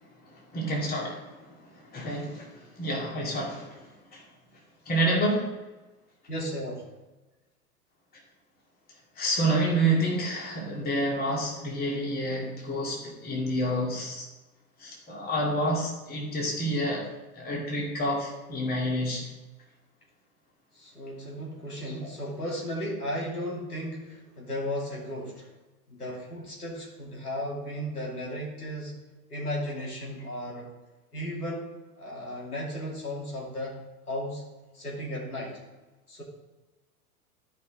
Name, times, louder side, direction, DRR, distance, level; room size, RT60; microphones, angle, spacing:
voice 1, 0.5-1.4 1.9-3.8 4.1-4.2 4.9-5.5 9.2-14.3 14.8-17.1 17.4-19.3 21.8-21.9, right 1 dB, 20° left, -3 dB, 2.4 m, -28 dB
voice 2, 6.3-6.8 20.7-25.5 25.9-28.9 29.3-30.7 31.1-31.7 32.0-33.8 34.1-34.4 34.7-35.6 36.1-36.2, equal, 85° left, -4 dB, 2.9 m, -35 dB
14.0 x 5.5 x 3.8 m, 1.1 s
figure-of-eight pair, 95°, 45 cm